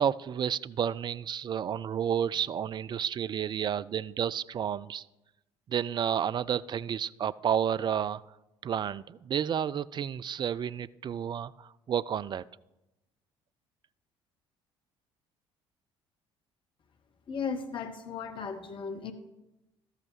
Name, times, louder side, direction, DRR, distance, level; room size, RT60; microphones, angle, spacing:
voice 1, 0.0-5.0 5.7-8.2 8.6-12.4, right 8 dB, 30° right, 17 dB, 0.3 m, -31 dB
voice 2, 17.3-19.1, left 6 dB, 35° left, 7 dB, 0.9 m, -36 dB
13.5 x 5.7 x 6.1 m, 0.96 s
figure-of-eight pair, 50°, 15 cm